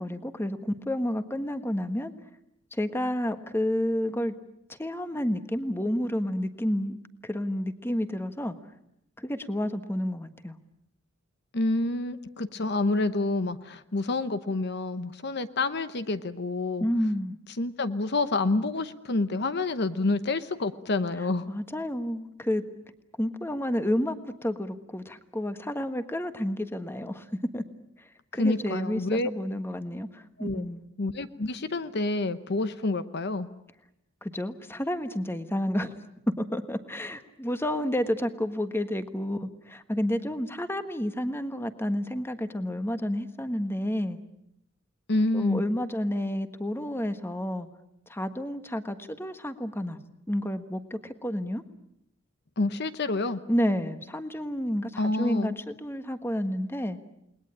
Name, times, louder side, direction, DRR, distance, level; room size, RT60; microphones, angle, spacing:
voice 1, 0.0-2.1 2.7-4.3 4.8-7.0 7.2-8.5 9.2-10.6 16.8-17.4 21.5-22.6 23.2-27.2 27.5-27.6 28.0-28.1 28.3-30.8 34.2-35.9 36.4-44.2 45.3-47.7 48.1-50.0 50.3-51.6 53.5-57.0, equal, 10° left, 9 dB, 1.4 m, -30 dB
voice 2, 11.5-16.9 17.6-21.5 28.3-29.3 30.4-30.6 31.0-33.5 45.1-45.6 52.6-53.4 55.0-55.6, left 2 dB, 55° left, 11 dB, 1.0 m, -28 dB
29.5 x 20.5 x 8.8 m, 0.80 s
head